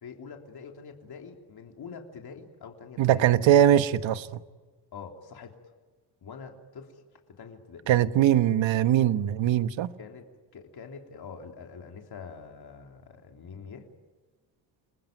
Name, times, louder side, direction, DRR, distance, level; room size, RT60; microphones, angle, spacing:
voice 1, 0.0-3.3 3.6-3.7 4.9-5.6 6.2-7.0 7.4-7.9 10.0-10.3 10.5-13.9, left 5 dB, 50° left, 3.4 m, -45 dB
voice 2, 3.0-4.4 7.9-9.9, right 11 dB, 70° right, 1.3 m, -21 dB
29.5 x 20.5 x 9.4 m
cardioid pair, 100°, 47 cm